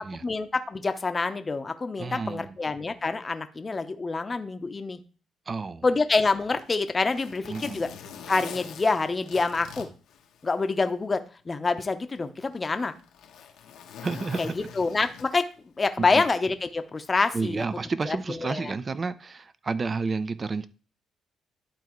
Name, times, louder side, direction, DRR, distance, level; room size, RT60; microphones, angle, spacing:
voice 1, 0.2-5.0 5.8-7.9 8.3-9.9 10.4-11.2 11.5-12.9 14.4-15.4 15.8-17.6 18.0-18.7, left 3 dB, 30° left, 0.7 m, -26 dB
voice 2, 2.0-2.6 5.5-5.8 7.5-7.8 14.0-14.5 16.0-16.2 17.3-20.7, right 4 dB, 35° right, 0.5 m, -31 dB
Zipper (clothing), 6.4-10.9 11.3-11.4 12.1-15.6 16.8-17.0, left 8 dB, 85° left, 1.0 m, -44 dB
11.5 x 4.0 x 3.0 m
cardioid pair, 90°, 0 cm